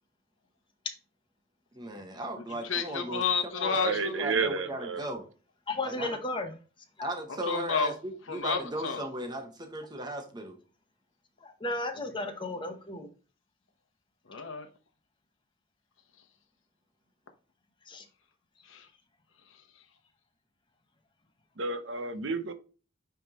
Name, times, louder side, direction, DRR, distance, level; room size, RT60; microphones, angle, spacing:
voice 1, 1.7-3.2 3.6-5.3 5.8-6.1 7.0-10.6, right 1 dB, 20° right, 1.1 m, -37 dB
voice 2, 2.4-4.3 7.3-8.0 8.2-9.1 14.2-14.7 18.6-18.9 19.4-19.8, left 5 dB, 70° left, 1.0 m, -32 dB
voice 3, 3.8-5.1 21.6-22.5, right 4 dB, 65° right, 0.7 m, -31 dB
voice 4, 5.7-6.5 7.0-7.1 11.4-13.1 17.9-18.1, left 2 dB, 25° left, 0.9 m, -34 dB
9.1 x 3.5 x 3.0 m
head